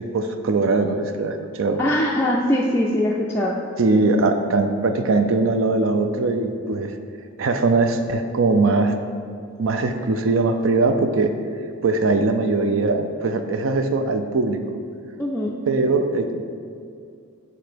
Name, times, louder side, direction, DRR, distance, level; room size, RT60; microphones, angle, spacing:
voice 1, 0.0-1.8 3.8-6.9 7.4-8.9 9.6-11.3 11.8-14.6 15.7-16.4, right 3 dB, 65° right, 6 dB, 0.5 m, -21 dB
voice 2, 1.8-3.6 15.2-15.6, left 1 dB, 10° left, -4 dB, 0.3 m, -21 dB
7.8 x 3.2 x 5.1 m, 2.4 s
head